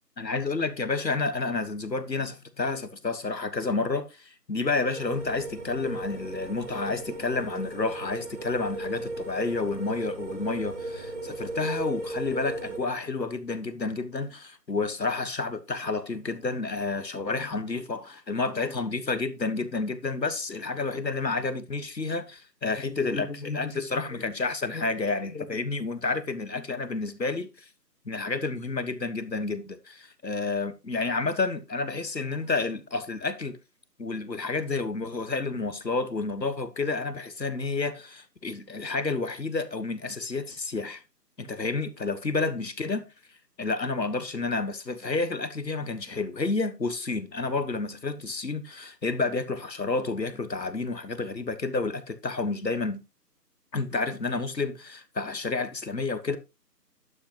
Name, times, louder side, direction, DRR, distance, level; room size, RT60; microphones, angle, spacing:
voice 1, 0.2-27.7 28.0-33.6 34.0-41.0 41.4-43.0 43.6-53.0 53.7-56.4, left 3 dB, 90° left, 1.5 m, -30 dB
sound 1, 4.9-12.8, right 2 dB, 45° right, 2.6 m, -36 dB
11.5 x 8.2 x 3.0 m
figure-of-eight pair, 165°, 49 cm